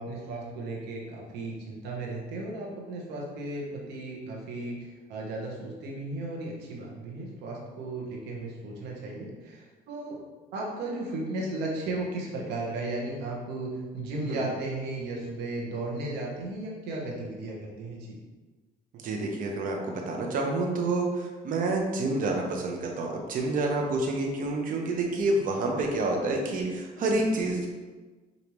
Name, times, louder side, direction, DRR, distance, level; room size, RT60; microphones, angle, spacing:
voice 1, 0.0-10.2 10.5-18.2, right 2 dB, 80° right, -2 dB, 1.1 m, -35 dB
voice 2, 18.9-27.7, right 2 dB, 55° right, 1 dB, 0.8 m, -28 dB
5.2 x 2.7 x 3.0 m, 1.3 s
cardioid pair, 110°, 17 cm